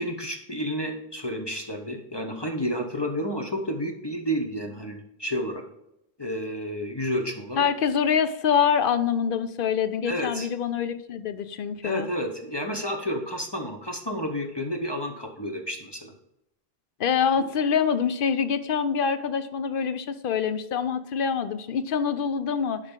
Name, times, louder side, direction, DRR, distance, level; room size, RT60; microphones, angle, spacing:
voice 1, 0.0-5.6 6.2-7.6 10.1-10.5 11.8-16.1, equal, 25° left, 2 dB, 0.8 m, -30 dB
voice 2, 7.6-12.1 17.0-22.8, left 7 dB, 60° left, 12 dB, 0.8 m, -25 dB
11.5 x 5.0 x 3.7 m, 0.83 s
omnidirectional pair, 1.1 m